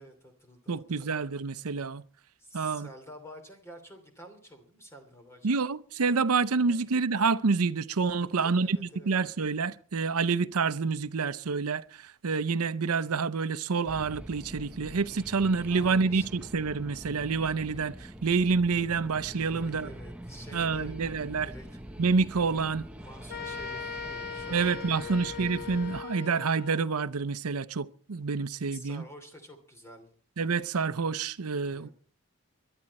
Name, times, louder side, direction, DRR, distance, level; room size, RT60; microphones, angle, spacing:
voice 1, 0.0-1.1 2.4-5.6 6.7-6.9 8.2-9.1 15.7-16.4 19.4-21.1 21.4-21.7 23.0-25.3 28.7-30.1 31.5-31.9, equal, 10° left, 2.9 m, -49 dB
voice 2, 0.7-2.0 2.5-2.9 5.4-8.8 9.1-11.8 12.2-18.0 18.2-19.9 20.5-21.5 22.0-22.9 24.5-29.0 30.4-31.9, right 4 dB, 85° right, 0.7 m, -28 dB
sound 1, 13.9-26.0, equal, 5° right, 0.7 m, -44 dB
sound 2, 23.3-27.0, left 7 dB, 45° left, 1.5 m, -39 dB
22.0 x 12.0 x 4.2 m
head